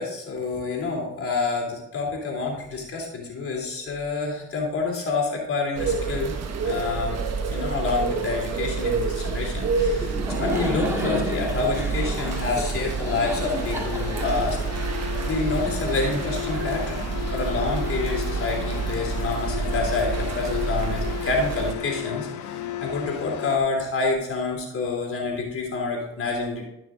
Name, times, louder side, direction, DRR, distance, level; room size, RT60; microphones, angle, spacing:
voice 1, 0.0-6.3 6.6-7.2 7.5-14.6 15.3-17.0 17.3-26.6, left 4 dB, 45° left, -1 dB, 3.2 m, -28 dB
sound 1, 5.7-21.7, right 5 dB, 60° right, 1.3 m, -28 dB
Laughter, 9.7-15.5, equal, 10° right, 2.0 m, -32 dB
sound 2, 11.2-23.6, left 11 dB, 80° left, 0.9 m, -34 dB
13.5 x 6.0 x 3.8 m, 0.90 s
cardioid pair, 90°, 30 cm